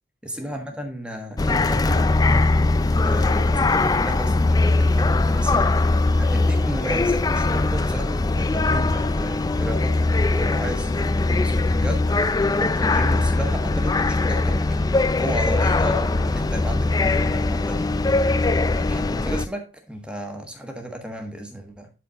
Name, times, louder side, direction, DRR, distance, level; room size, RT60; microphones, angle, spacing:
voice 1, 0.2-21.9, right 1 dB, 5° right, 1.4 m, -34 dB
sound 1, 1.4-19.5, left 2 dB, 20° left, 0.3 m, -21 dB
12.0 x 4.2 x 4.0 m
head